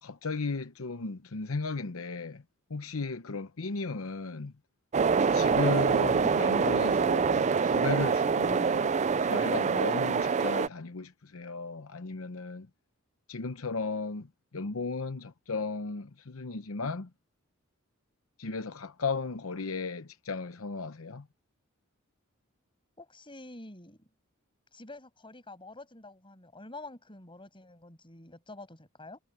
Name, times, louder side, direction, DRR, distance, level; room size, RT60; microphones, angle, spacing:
voice 1, 0.0-2.4 2.7-4.5 5.3-8.9 9.2-12.7 13.3-17.1 18.4-21.3, left 4 dB, 75° left, 0.9 m, -35 dB
sound 1, 4.9-10.7, right 5 dB, 35° right, 0.4 m, -25 dB
voice 2, 23.0-24.1 24.7-29.2, left 2 dB, 25° left, 6.8 m, -48 dB
head